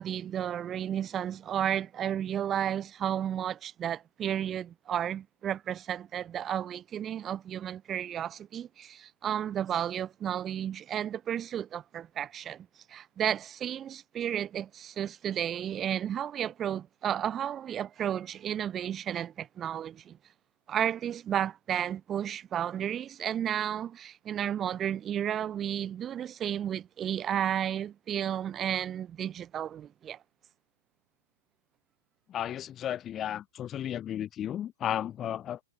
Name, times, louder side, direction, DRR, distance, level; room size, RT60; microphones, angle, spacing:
voice 1, 0.0-20.2 20.7-30.2, right 10 dB, 25° right, 0.8 m, -32 dB
voice 2, 32.3-35.6, left 10 dB, 25° left, 0.5 m, -34 dB
hypercardioid pair, 115°, 0 cm